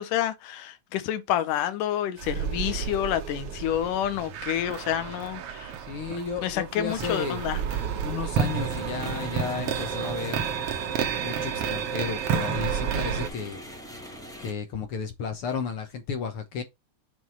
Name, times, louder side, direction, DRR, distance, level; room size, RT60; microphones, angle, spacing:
voice 1, 0.0-5.8 6.4-7.6, left 11 dB, 85° left, 2.5 m, -28 dB
sound 1, 2.2-13.3, right 7 dB, 60° right, 1.6 m, -31 dB
voice 2, 5.8-7.4 8.0-10.4 11.2-13.6 14.4-16.6, left 6 dB, 60° left, 1.5 m, -33 dB
sound 2, 6.9-11.8 12.1-12.2, right 7 dB, 90° right, 2.9 m, -43 dB
sound 3, 8.4-14.5, equal, 5° left, 0.4 m, -42 dB
7.5 x 4.1 x 4.6 m
omnidirectional pair, 3.6 m